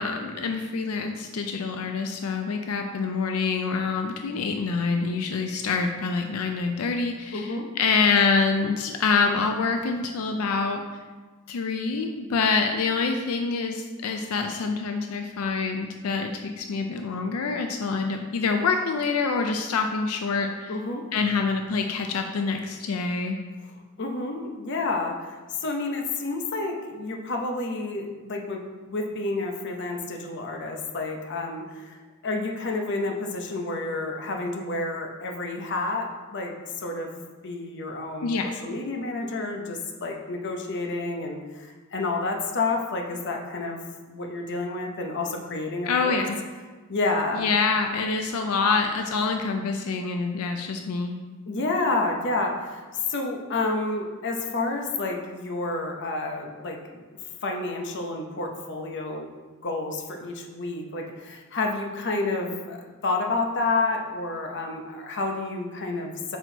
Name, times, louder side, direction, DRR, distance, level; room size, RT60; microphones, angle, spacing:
voice 1, 0.0-10.8 11.5-20.7 21.1-23.4 38.2-38.5 45.9-46.4 47.3-51.1, left 4 dB, 85° left, 5 dB, 0.4 m, -26 dB
voice 2, 7.3-7.7 20.7-21.0 24.0-32.0 32.2-43.8 44.1-46.2 46.9-47.5 51.5-52.8 53.1-57.1 57.4-59.3 59.6-66.4, left 3 dB, 55° left, 2 dB, 0.8 m, -30 dB
6.2 x 4.5 x 3.9 m, 1.4 s
head